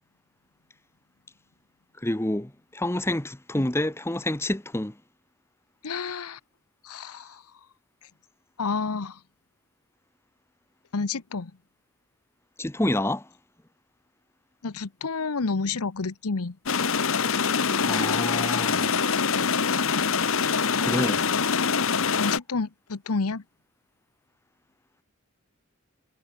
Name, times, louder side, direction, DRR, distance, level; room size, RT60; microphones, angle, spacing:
voice 1, 2.0-5.0 12.6-13.3 17.9-19.0 20.8-21.2, left 1 dB, 10° left, 0.8 m, -28 dB
voice 2, 5.8-6.4 6.8-7.4 8.6-9.2 10.9-11.5 14.6-16.6 22.2-23.4, left 4 dB, 90° left, 0.9 m, -29 dB
sound 1, 16.7-22.4, left 6 dB, 65° left, 1.1 m, -24 dB
head